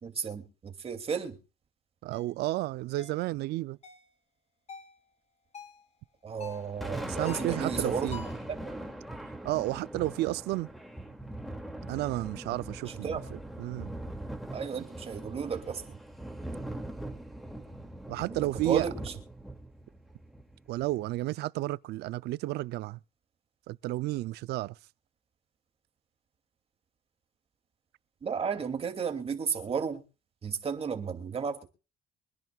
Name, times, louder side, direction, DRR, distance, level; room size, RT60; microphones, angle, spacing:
voice 1, 0.0-1.4 6.2-8.1 8.6-8.9 12.8-13.2 14.5-15.9 18.6-19.1 28.2-30.0 30.4-31.7, right 6 dB, 35° right, 2.7 m, -33 dB
voice 2, 2.0-3.8 7.1-8.2 9.4-10.7 11.9-13.9 18.1-18.9 20.7-23.0 23.7-24.8, right 17 dB, 75° right, 0.6 m, -32 dB
sound 1, 2.1-2.3 3.0-3.2 3.8-4.1 4.7-4.9 5.5-5.8 6.4-6.7 7.3-7.6 8.1-8.5, left 6 dB, 40° left, 2.9 m, -46 dB
Thunder, 6.4-21.0, right 1 dB, ahead, 2.5 m, -41 dB
25.0 x 10.5 x 2.4 m
cardioid pair, 110°, 17 cm